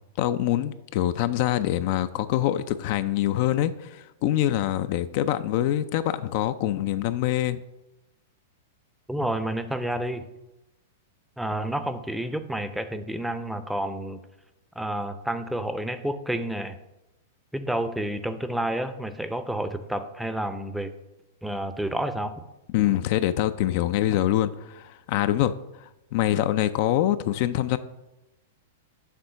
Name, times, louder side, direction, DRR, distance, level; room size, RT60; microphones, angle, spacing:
voice 1, 0.2-7.6 22.7-27.8, left 13 dB, 55° left, 12 dB, 0.3 m, -25 dB
voice 2, 9.1-10.2 11.4-14.2 14.8-16.8 17.5-20.9 21.4-22.3, right 1 dB, 5° right, 10 dB, 0.5 m, -30 dB
6.7 x 3.6 x 5.6 m, 0.95 s
hypercardioid pair, 105°, 0 cm